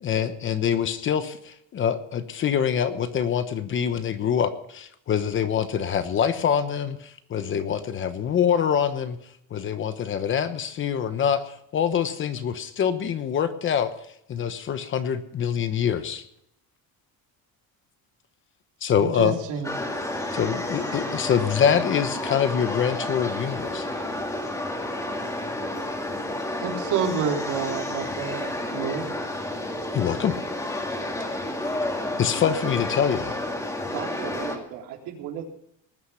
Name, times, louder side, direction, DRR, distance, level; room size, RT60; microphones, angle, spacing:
voice 1, 0.0-9.2 9.5-13.9 14.3-16.2 18.8-19.4 20.3-23.9 29.9-30.4 32.2-33.4, left 8 dB, 35° left, 10 dB, 1.1 m, -25 dB
voice 2, 19.0-19.7 26.6-29.1, right 6 dB, 60° right, 2 dB, 3.1 m, -29 dB
sound 1, 19.6-34.6, left 1 dB, 10° left, 2.3 m, -30 dB
voice 3, 33.9-35.4, right 9 dB, 80° right, 0 dB, 3.8 m, -36 dB
19.5 x 9.5 x 5.7 m, 0.75 s
cardioid pair, 160°, 35 cm